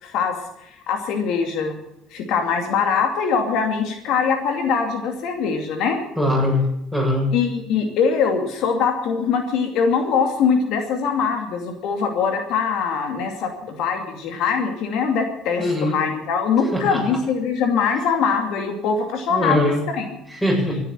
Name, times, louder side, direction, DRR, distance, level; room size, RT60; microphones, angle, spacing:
voice 1, 0.0-1.8 2.1-6.0 7.3-19.6 20.0-20.1, left 6 dB, 65° left, 4 dB, 2.6 m, -22 dB
voice 2, 6.2-6.6 6.9-7.3 15.6-16.0 16.7-17.2 19.3-19.8 20.3-20.8, left 1 dB, 5° left, 0 dB, 7.6 m, -21 dB
15.0 x 10.0 x 9.0 m, 0.84 s
cardioid pair, 115°, 0 cm